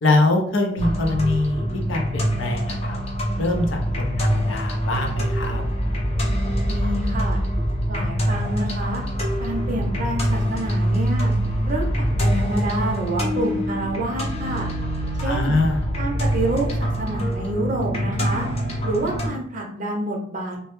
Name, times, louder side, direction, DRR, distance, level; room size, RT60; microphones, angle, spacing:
voice 1, 0.0-3.0 3.4-5.6 15.3-15.8, left 2 dB, 80° left, 2 dB, 0.5 m, -23 dB
sound 1, 0.8-19.3, equal, 35° left, 0.5 m, -24 dB
voice 2, 6.7-7.4 7.9-9.0 9.4-11.3 11.7-14.7 15.1-15.6 16.0-18.5 18.8-20.7, right 1 dB, 45° right, 0 dB, 0.5 m, -28 dB
2.1 x 2.0 x 2.9 m, 0.63 s
head